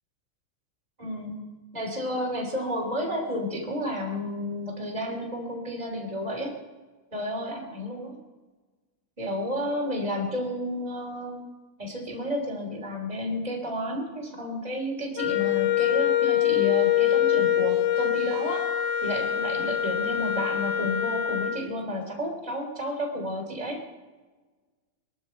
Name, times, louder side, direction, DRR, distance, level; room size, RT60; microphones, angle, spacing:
voice 1, 1.0-1.5 1.7-6.5 7.1-8.2 9.2-11.5 11.8-18.6 19.0-23.8, equal, 10° right, -1 dB, 2.1 m, -31 dB
Wind instrument woodwind instrument, 15.2-21.6, left 11 dB, 75° left, 2.9 m, -24 dB
24.0 x 12.5 x 4.5 m, 1.3 s
omnidirectional pair, 5.6 m